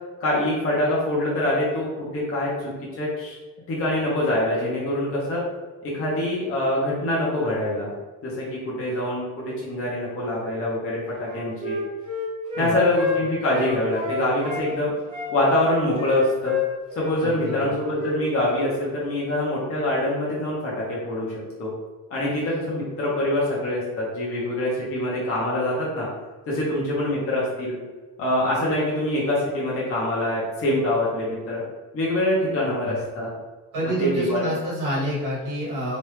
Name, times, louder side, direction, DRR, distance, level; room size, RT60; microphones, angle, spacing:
voice 1, 0.2-3.4 3.7-5.4 5.8-7.9 8.2-11.8 12.6-14.9 15.3-16.5 17.0-21.7 22.1-26.1 26.5-27.8 28.2-31.6 31.9-33.3 34.0-34.5, left 1 dB, 40° left, -6 dB, 0.9 m, -24 dB
Wind instrument woodwind instrument, 11.2-14.6 15.1-17.1 17.4-17.6 17.9-18.2 18.5-18.7, left 5 dB, 15° right, 0.7 m, -30 dB
voice 2, 17.2-17.8 32.7-33.0 33.7-36.0, right 1 dB, 60° right, -7 dB, 1.3 m, -28 dB
3.0 x 2.5 x 3.3 m, 1.3 s
cardioid pair, 170°, 36 cm